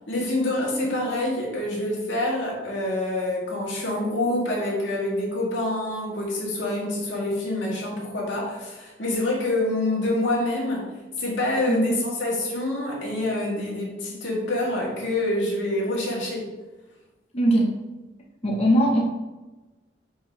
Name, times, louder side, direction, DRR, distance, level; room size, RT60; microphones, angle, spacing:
voice 1, 0.1-10.9 11.2-16.5, left 1 dB, 90° left, -3 dB, 1.9 m, -26 dB
voice 2, 11.7-12.0 17.3-17.7 18.4-19.0, right 1 dB, 35° left, -2 dB, 0.8 m, -20 dB
5.1 x 3.7 x 5.0 m, 1.1 s
head